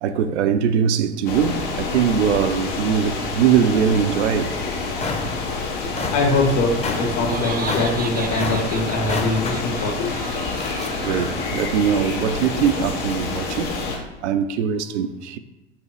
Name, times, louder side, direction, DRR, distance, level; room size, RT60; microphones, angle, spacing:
voice 1, 0.0-4.5 7.3-7.4 11.0-15.4, right 7 dB, 75° right, 0.6 m, -21 dB
sound 1, 1.3-14.0, left 4 dB, 75° left, 1.8 m, -28 dB
sound 2, 4.9-14.0, left 3 dB, 20° left, 0.9 m, -33 dB
voice 2, 6.1-10.1, left 2 dB, 55° left, 1.9 m, -22 dB
Laughter, 6.6-11.9, right 6 dB, 25° right, 0.6 m, -35 dB
5.9 x 3.8 x 4.8 m
hypercardioid pair, 90°, 34 cm